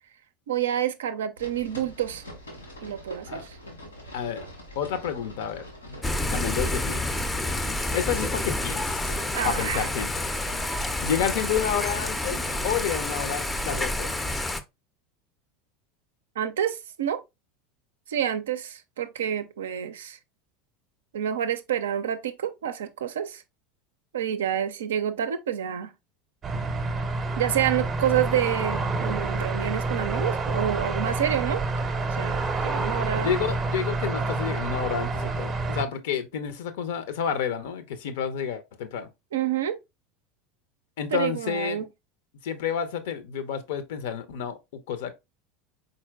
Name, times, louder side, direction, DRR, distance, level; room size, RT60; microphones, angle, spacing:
voice 1, 0.5-2.2 2.8-3.6 9.3-9.9 16.4-17.2 18.1-20.2 21.1-23.4 24.1-25.9 27.4-31.6 32.1-33.3 39.3-39.8 41.1-41.9, right 10 dB, 70° right, 0.4 m, -28 dB
sound 1, 1.4-12.9, equal, 80° left, 1.4 m, -45 dB
voice 2, 4.1-4.4 4.8-6.0 6.3-7.1 7.9-9.1 9.4-10.1 11.0-14.1 33.2-39.1 41.0-41.9 42.4-44.6 44.9-45.1, left 8 dB, 60° left, 0.6 m, -30 dB
Thunder / Rain, 6.0-14.6, left 1 dB, 10° left, 0.5 m, -29 dB
sound 2, 26.4-35.9, right 3 dB, 25° right, 0.7 m, -28 dB
4.3 x 3.8 x 2.3 m
figure-of-eight pair, 75°, 0 cm